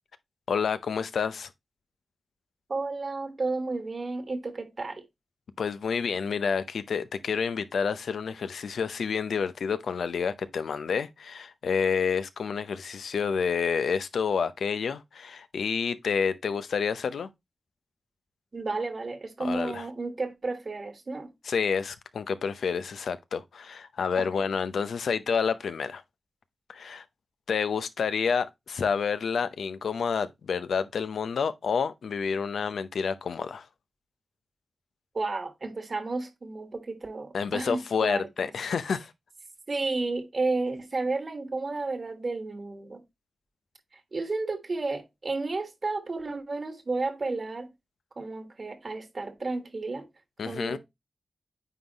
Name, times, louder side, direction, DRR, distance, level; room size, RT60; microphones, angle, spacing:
voice 1, 0.5-1.5 5.6-17.3 19.4-19.9 21.4-26.0 26.7-27.0 27.5-33.7 37.3-39.1 50.4-50.8, left 6 dB, 90° left, 0.6 m, -29 dB
voice 2, 2.7-5.0 18.5-21.3 24.1-24.3 35.1-38.3 39.7-43.0 44.1-47.7 48.2-50.1 50.4-50.8, right 3 dB, 50° right, 1.4 m, -32 dB
9.1 x 3.8 x 2.9 m
cardioid pair, 65°, 0 cm